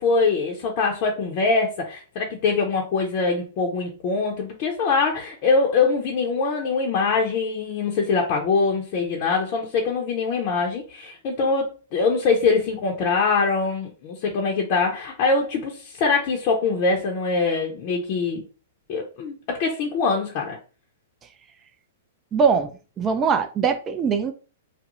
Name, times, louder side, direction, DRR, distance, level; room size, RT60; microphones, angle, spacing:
voice 1, 0.0-18.4 18.9-20.6, left 4 dB, 45° left, 0.6 m, -23 dB
voice 2, 22.3-22.7 23.0-24.3, right 6 dB, 25° right, 0.4 m, -21 dB
2.4 x 2.0 x 2.9 m
hypercardioid pair, 120°, 0 cm